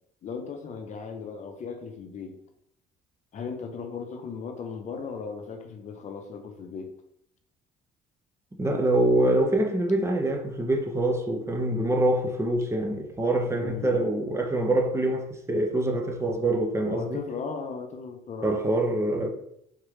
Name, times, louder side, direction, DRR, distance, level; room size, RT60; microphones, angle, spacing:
voice 1, 0.2-2.4 3.3-6.9 13.6-14.1 16.8-18.6, left 5 dB, 45° left, 0.6 m, -37 dB
voice 2, 8.5-17.2 18.4-19.3, right 1 dB, 15° right, 0.6 m, -25 dB
3.6 x 3.2 x 3.1 m
cardioid pair, 110°, 17 cm